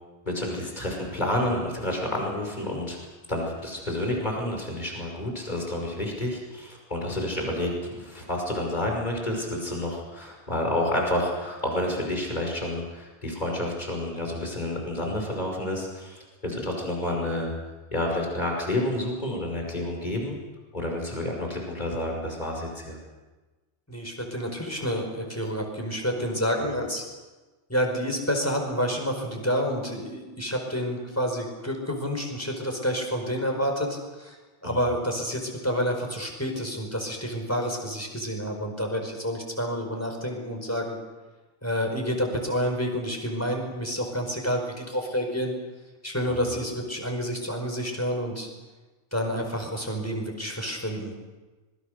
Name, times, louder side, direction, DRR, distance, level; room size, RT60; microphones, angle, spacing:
voice 1, 0.3-3.0 3.3-17.5 17.9-20.4 20.7-23.0 34.6-34.8 46.3-46.5, left 1 dB, 40° left, 1 dB, 5.7 m, -29 dB
voice 2, 23.9-27.0 27.7-34.4 34.6-41.0 41.6-45.5 46.0-48.5 49.1-51.1, equal, 15° left, 2 dB, 5.0 m, -29 dB
26.0 x 22.0 x 6.6 m, 1.2 s
omnidirectional pair, 1.2 m